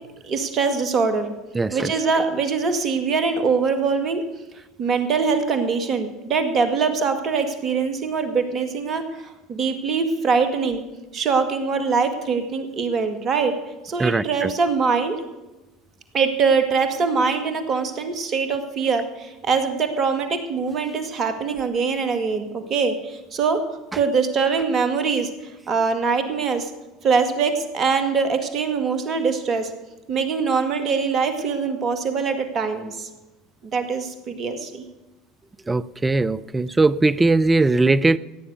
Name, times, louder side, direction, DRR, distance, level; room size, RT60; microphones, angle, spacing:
voice 1, 0.2-1.3 1.7-4.2 4.8-10.8 11.1-13.6 13.8-15.2 16.1-23.6 23.9-25.3 25.7-26.7 27.0-29.7 30.1-33.1 33.6-34.8, right 5 dB, 40° right, 2.1 m, -23 dB
voice 2, 1.5-1.9 14.0-14.5 35.7-38.2, right 3 dB, 15° right, 0.5 m, -19 dB
15.5 x 9.6 x 6.8 m
hypercardioid pair, 75°, 0 cm